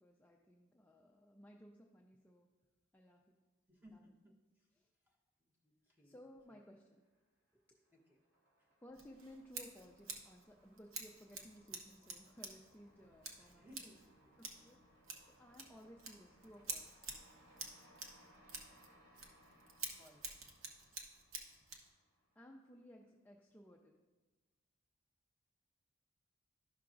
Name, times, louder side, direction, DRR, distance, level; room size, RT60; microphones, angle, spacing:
voice 1, 0.0-2.5 2.9-3.3 3.9-4.0 4.8-4.9 6.0-7.0 7.5-7.8 8.8-13.7 14.4-14.8 15.2-17.0 22.4-24.0, equal, 10° left, 0 dB, 0.4 m, -59 dB
voice 2, 3.7-4.7 5.1-6.2 6.5-6.6 7.9-8.2 8.6-8.7 13.4-14.2 20.0-20.4, equal, 10° right, -2 dB, 1.0 m, -63 dB
sound 1, 6.5-7.2 7.5-22.7, equal, 60° right, 2.4 m, -68 dB
Scissors, 8.9-21.9, right 4 dB, 80° right, 0.9 m, -50 dB
12.0 x 5.7 x 2.5 m, 1.2 s
head